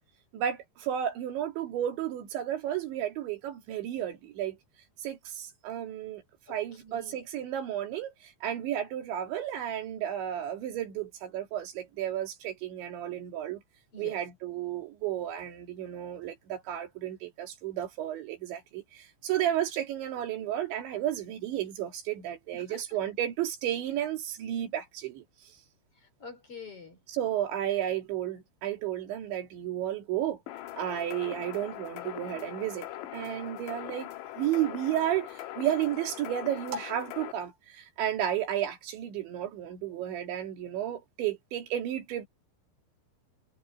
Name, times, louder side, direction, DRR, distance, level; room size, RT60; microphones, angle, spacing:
voice 1, 0.3-4.6 5.0-6.2 6.5-13.6 14.0-25.2 27.1-30.4 30.8-34.1 34.4-42.3, right 11 dB, 80° right, 4.8 m, -32 dB
voice 2, 6.5-7.2 13.9-14.2 22.5-22.8 26.0-27.0, left 4 dB, 35° left, 4.5 m, -46 dB
sound 1, 30.5-37.3, left 13 dB, 75° left, 3.6 m, -41 dB
omnidirectional pair, 5.2 m